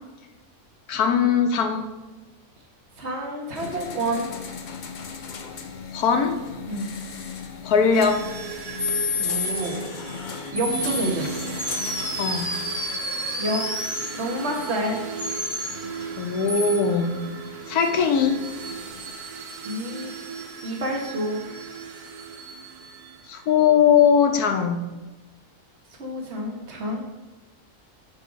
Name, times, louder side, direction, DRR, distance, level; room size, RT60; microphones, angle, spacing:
voice 1, 0.9-1.9 5.9-6.4 7.6-8.2 12.2-12.5 16.2-17.2 17.7-18.4 23.3-24.8, left 6 dB, 80° left, 6 dB, 1.3 m, -20 dB
voice 2, 3.0-4.3 6.7-6.9 9.1-9.8 10.5-11.3 13.0-13.6 14.1-15.0 19.6-20.1 20.6-21.4 26.0-27.0, right 1 dB, 45° right, 0 dB, 1.7 m, -29 dB
sound 1, 3.5-19.1, left 6 dB, 55° left, 0.5 m, -39 dB
sound 2, 7.9-23.6, right 7 dB, 80° right, 1.4 m, -37 dB
sound 3, 8.8-9.6 10.6-11.1 11.6-14.1 15.2-15.8 16.5-16.8, left 2 dB, ahead, 0.6 m, -28 dB
9.2 x 3.9 x 5.1 m, 1.2 s
omnidirectional pair, 1.6 m